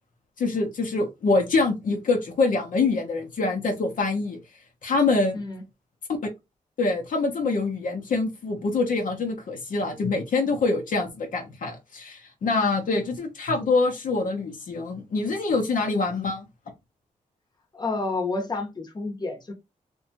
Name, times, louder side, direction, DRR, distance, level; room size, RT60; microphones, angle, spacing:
voice 1, 0.4-4.4 4.8-5.4 6.8-16.5, left 3 dB, 65° left, 0.7 m, -25 dB
voice 2, 17.7-19.5, left 3 dB, 30° left, 0.8 m, -29 dB
2.6 x 2.2 x 2.7 m
cardioid pair, 80°, 15 cm